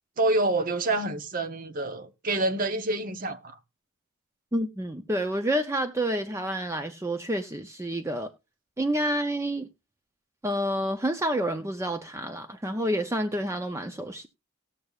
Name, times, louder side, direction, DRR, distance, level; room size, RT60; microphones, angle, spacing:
voice 1, 0.2-3.6, right 2 dB, 40° right, 0.8 m, -27 dB
voice 2, 4.5-8.3 8.8-9.7 10.4-14.3, right 1 dB, 15° right, 0.5 m, -29 dB
18.5 x 6.7 x 2.3 m
head